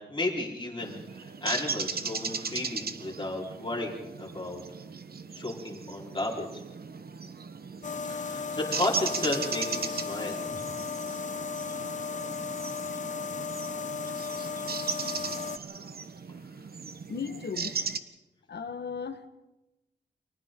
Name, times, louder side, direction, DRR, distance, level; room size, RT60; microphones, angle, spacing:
voice 1, 0.0-4.6 5.3-6.6 8.1-10.6, left 2 dB, 25° left, -2 dB, 4.4 m, -33 dB
sound 1, 0.8-18.0, right 5 dB, 60° right, 1.1 m, -37 dB
sound 2, 7.8-15.6, left 5 dB, 45° left, 0.9 m, -35 dB
voice 2, 17.1-17.7 18.5-19.3, left 5 dB, 70° left, 8 dB, 1.5 m, -36 dB
29.5 x 24.5 x 3.9 m, 1.0 s
wide cardioid pair, 100°, 18 cm